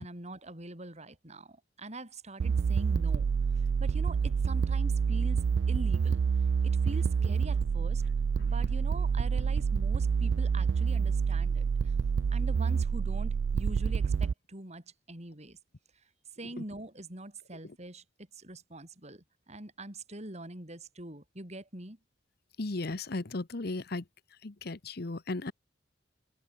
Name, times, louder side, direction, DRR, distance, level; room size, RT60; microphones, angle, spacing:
voice 1, 0.0-6.2 6.6-8.0 8.4-11.9 12.3-15.6 16.4-18.0 18.3-22.0, right 1 dB, 40° right, 5.5 m, -44 dB
sound 1, 2.4-14.3, right 6 dB, 85° right, 0.4 m, -28 dB
voice 2, 22.6-24.0 24.4-25.5, left 2 dB, 60° left, 1.0 m, -35 dB
head